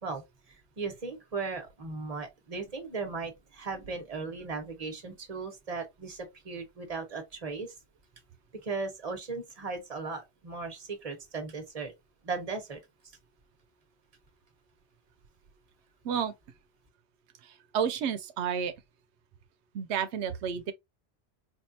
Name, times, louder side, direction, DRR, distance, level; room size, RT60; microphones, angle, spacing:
voice 1, 0.0-7.7 8.6-11.9 12.2-12.8, right 4 dB, 35° right, 1.1 m, -37 dB
voice 2, 17.4-18.7 19.7-20.7, right 7 dB, 90° right, 0.9 m, -31 dB
4.5 x 2.4 x 2.7 m
omnidirectional pair, 1.1 m